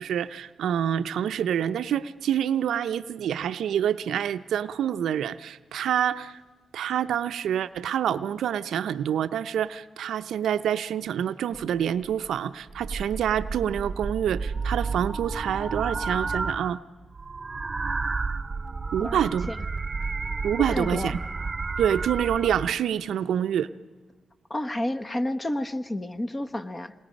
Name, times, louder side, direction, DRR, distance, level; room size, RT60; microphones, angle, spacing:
voice 1, 0.0-6.4 6.7-16.8 18.9-19.5 20.4-21.2 21.8-23.7, right 9 dB, 85° right, 12 dB, 0.6 m, -27 dB
sound 1, 11.5-11.6 12.0-12.3 12.7-16.8 17.0-22.7, right 4 dB, 35° right, 0.7 m, -31 dB
voice 2, 19.0-19.6 20.7-21.2 24.5-26.9, left 1 dB, 25° left, 10 dB, 1.2 m, -30 dB
28.0 x 21.5 x 5.2 m, 1.3 s
cardioid pair, 75°, 0 cm